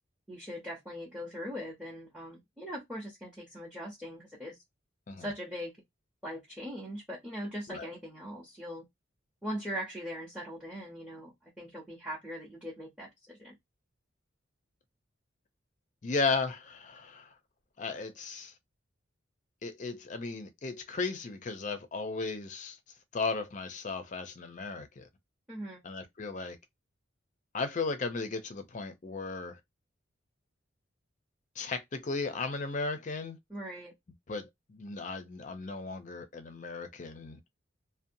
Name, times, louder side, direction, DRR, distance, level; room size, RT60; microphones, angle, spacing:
voice 1, 0.3-4.6 5.2-5.7 6.2-8.8 9.4-13.5 25.5-25.8 33.5-33.9, equal, 5° right, 0.7 m, -40 dB
voice 2, 16.0-17.3 17.8-18.5 19.6-22.8 23.1-25.1 25.8-26.6 27.5-29.6 31.6-33.4 34.3-37.4, left 4 dB, 40° left, 0.5 m, -35 dB
2.7 x 2.1 x 2.6 m
head